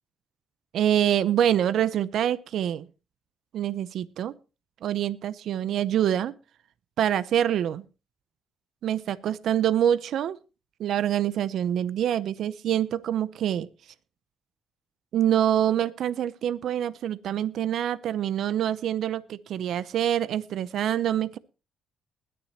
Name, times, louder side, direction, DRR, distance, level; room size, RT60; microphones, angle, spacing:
voice 1, 0.7-2.9 3.5-4.3 4.8-6.3 7.0-7.8 8.8-10.4 10.8-13.7 15.1-21.4, right 10 dB, 70° right, 17 dB, 0.6 m, -25 dB
20.5 x 10.5 x 2.9 m, 0.31 s
cardioid pair, 90°, 0 cm